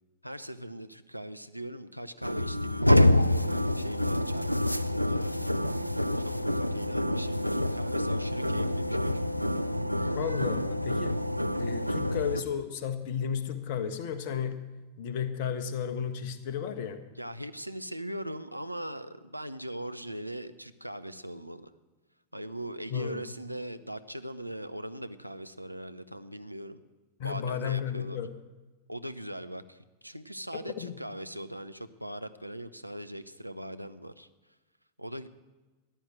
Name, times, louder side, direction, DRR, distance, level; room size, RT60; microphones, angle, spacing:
voice 1, 0.2-5.4 6.2-9.3 17.2-21.7 22.3-26.8 27.2-28.2 28.9-34.3 35.0-35.3, right 1 dB, 90° right, 12 dB, 0.7 m, -40 dB
sound 1, 2.2-12.4, left 1 dB, 90° left, 0.4 m, -27 dB
voice 2, 10.2-11.2 11.6-14.6 15.0-17.0 22.9-23.2 27.2-28.3 30.8-31.0, left 7 dB, 50° left, 10 dB, 1.4 m, -33 dB
14.5 x 11.5 x 7.8 m, 1.2 s
figure-of-eight pair, 90°, 0 cm